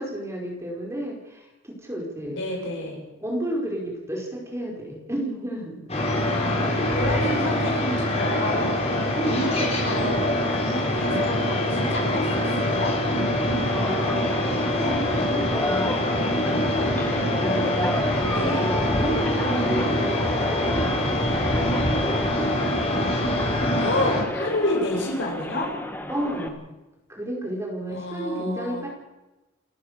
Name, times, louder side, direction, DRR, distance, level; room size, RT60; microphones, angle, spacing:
voice 1, 0.0-2.4 3.2-5.9 9.1-9.4 13.7-18.0 18.3-21.3 21.5-22.5 26.1-26.6 27.1-28.9, equal, 15° right, -1 dB, 4.9 m, -32 dB
voice 2, 2.3-3.0 6.3-8.8 9.2-10.2 10.5-12.9 18.3-18.7 23.7-25.7 27.9-28.9, left 1 dB, 65° left, 0 dB, 7.4 m, -29 dB
sound 1, 5.9-24.2, left 1 dB, 30° left, 4.9 m, -24 dB
sound 2, 13.7-26.5, left 1 dB, 10° left, 1.8 m, -33 dB
30.0 x 13.0 x 6.7 m, 1.0 s
head